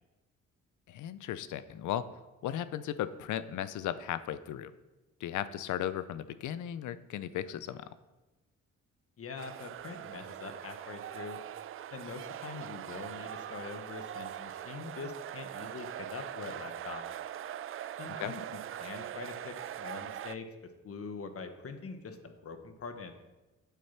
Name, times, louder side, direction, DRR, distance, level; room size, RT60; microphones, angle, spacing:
voice 1, 0.9-2.1 2.4-4.7 5.2-7.9 18.2-18.3, left 11 dB, 75° left, 15 dB, 0.7 m, -36 dB
voice 2, 9.2-11.4 11.9-17.0 18.0-20.5 20.8-23.2, left 4 dB, 50° left, 7 dB, 1.3 m, -44 dB
sound 1, 9.4-20.3, right 11 dB, 45° right, 0.4 m, -42 dB
8.5 x 7.7 x 5.8 m, 1.1 s
cardioid pair, 90°, 30 cm